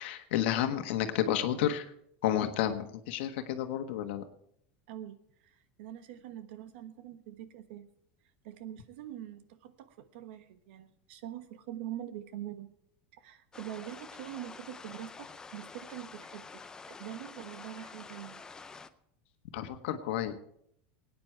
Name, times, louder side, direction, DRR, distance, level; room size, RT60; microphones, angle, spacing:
voice 1, 0.0-1.9 2.2-4.2 19.5-20.3, left 11 dB, 75° left, 7 dB, 1.4 m, -31 dB
voice 2, 4.9-7.8 8.4-12.7 13.1-16.6 16.9-18.4, right 12 dB, 75° right, 10 dB, 1.2 m, -44 dB
sound 1, 13.5-18.9, left 4 dB, 10° left, 0.5 m, -48 dB
20.0 x 9.5 x 4.6 m, 0.72 s
supercardioid pair, 160°, 6 cm